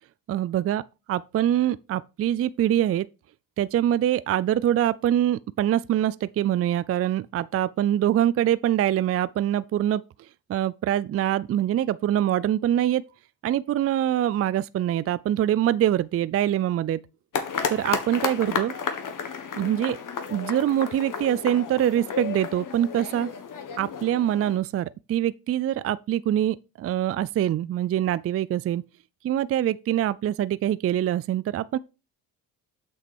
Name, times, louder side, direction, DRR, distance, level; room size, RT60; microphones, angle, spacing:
voice 1, 0.3-0.8 1.1-3.1 3.6-10.0 10.5-13.0 13.4-17.0 17.7-18.7 19.6-20.0 20.3-23.3 23.8-28.8 29.2-31.8, right 11 dB, 40° right, 0.4 m, -24 dB
sound 1, 17.3-24.6, left 6 dB, 55° left, 1.7 m, -32 dB
7.7 x 6.1 x 4.4 m
supercardioid pair, 75°, 38 cm